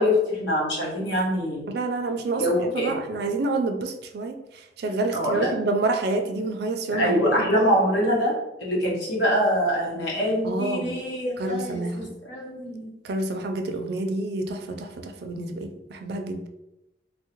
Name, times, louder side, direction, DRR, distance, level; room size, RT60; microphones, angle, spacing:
voice 1, 0.0-1.7 2.4-3.0 5.1-5.5 6.9-8.3 8.6-12.9, equal, 80° left, -4 dB, 1.0 m, -24 dB
voice 2, 1.7-7.4 10.4-10.9 11.4-12.2 13.0-16.5, right 2 dB, 60° right, 5 dB, 0.4 m, -28 dB
3.5 x 2.1 x 2.9 m, 0.92 s
head